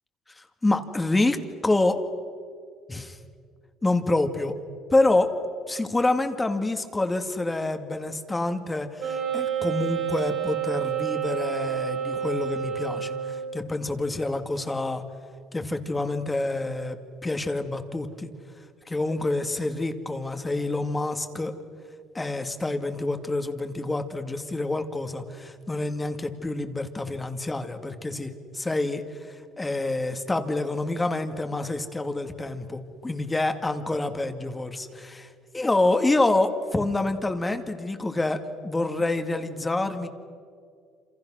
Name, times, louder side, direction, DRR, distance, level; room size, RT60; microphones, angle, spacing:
voice 1, 0.3-1.4 1.6-2.0 2.9-3.2 3.8-4.6 4.9-5.3 5.7-15.0 15.5-18.3 18.9-21.5 22.1-40.1, left 2 dB, 15° left, 7 dB, 2.1 m, -27 dB
Wind instrument woodwind instrument, 9.0-13.6, right 9 dB, 50° right, 5.1 m, -29 dB
28.0 x 27.5 x 6.4 m, 2.2 s
cardioid pair, 115°, 0 cm